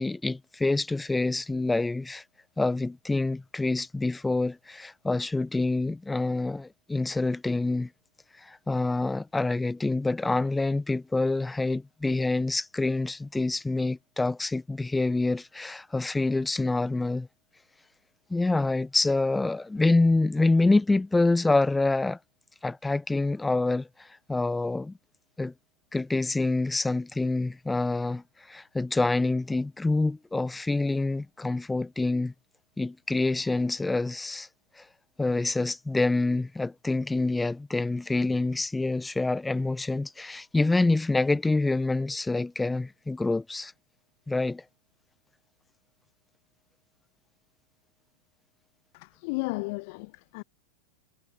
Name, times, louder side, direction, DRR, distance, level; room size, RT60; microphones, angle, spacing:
voice 1, 0.0-2.2 2.6-7.9 8.4-17.3 18.3-22.2 22.6-25.0 25.4-25.5 25.9-32.3 32.8-34.5 34.8-34.9 35.2-43.7 44.3-44.6, left 2 dB, 10° left, 1.3 m, -26 dB
voice 2, 48.9-50.4, left 29 dB, 45° left, 0.7 m, -34 dB
figure-of-eight pair, 90°, 0 cm